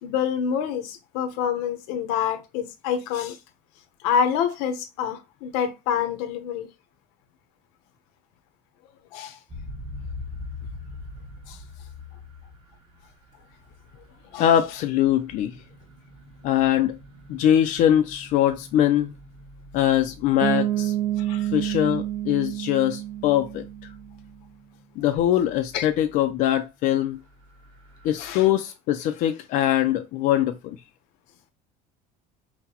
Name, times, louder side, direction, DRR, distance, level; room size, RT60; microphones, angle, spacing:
voice 1, 0.0-3.4 4.0-6.7 9.1-9.4 11.5-11.6 14.3-14.4 21.2-21.5 25.7-25.9 28.2-28.5, left 8 dB, 85° left, 0.8 m, -27 dB
sound 1, 9.5-26.5 27.0-28.5, left 2 dB, 35° right, 1.0 m, -44 dB
voice 2, 14.4-15.6 16.4-17.0 17.3-19.1 19.7-20.9 21.5-23.6 25.0-27.2 28.0-30.8, left 11 dB, 55° left, 0.4 m, -22 dB
Bass guitar, 20.4-24.1, right 13 dB, 60° right, 0.7 m, -28 dB
5.7 x 2.1 x 2.8 m
cardioid pair, 155°, 16 cm